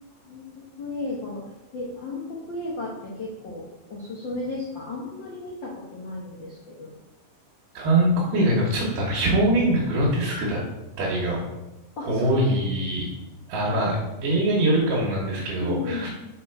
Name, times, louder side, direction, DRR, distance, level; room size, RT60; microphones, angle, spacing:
voice 1, 0.2-1.4 1.7-3.6 3.9-6.9 12.0-12.5 13.7-13.9 15.6-16.1, left 3 dB, 80° left, -4 dB, 1.0 m, -34 dB
voice 2, 7.7-10.6 11.0-11.4 12.0-13.1 13.5-13.9 14.2-16.1, right 1 dB, 80° right, -4 dB, 2.7 m, -23 dB
5.8 x 4.3 x 4.4 m, 1.0 s
omnidirectional pair, 3.8 m